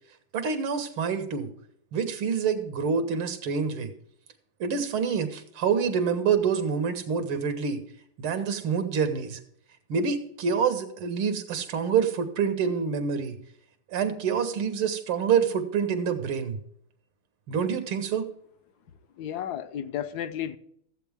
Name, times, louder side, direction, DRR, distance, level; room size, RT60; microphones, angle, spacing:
voice 1, 0.3-1.5 1.9-3.9 4.6-7.8 8.2-9.4 9.9-13.4 13.9-16.6 17.5-18.3, right 6 dB, 90° right, 2.2 m, -27 dB
voice 2, 19.2-20.6, left 10 dB, 65° left, 1.1 m, -33 dB
15.0 x 8.1 x 3.5 m
omnidirectional pair, 2.3 m